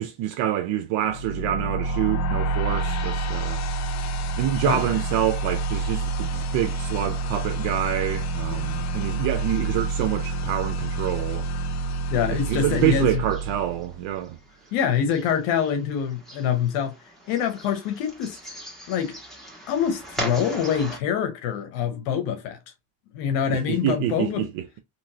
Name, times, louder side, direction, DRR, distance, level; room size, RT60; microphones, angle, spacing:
voice 1, 0.0-3.6 4.4-11.5 12.3-14.4 23.5-24.8, right 12 dB, 75° right, 0.6 m, -27 dB
sound 1, 1.1-14.2, right 2 dB, 40° left, 0.4 m, -28 dB
voice 2, 12.1-13.1 14.7-17.0 17.3-18.4 18.9-19.2 19.7-22.6 23.1-24.5, left 8 dB, 90° left, 0.8 m, -25 dB
sound 2, 12.8-21.0, right 1 dB, ahead, 1.5 m, -40 dB
3.0 x 2.9 x 2.7 m
supercardioid pair, 90°, 44 cm